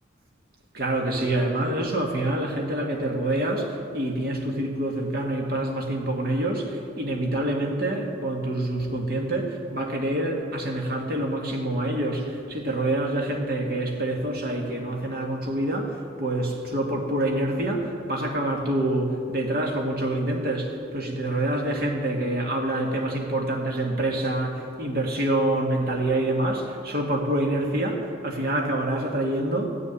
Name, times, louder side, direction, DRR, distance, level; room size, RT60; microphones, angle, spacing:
voice 1, 0.7-15.9 16.2-29.7, right 1 dB, 50° right, 0 dB, 1.9 m, -26 dB
14.5 x 7.0 x 9.1 m, 2.4 s
head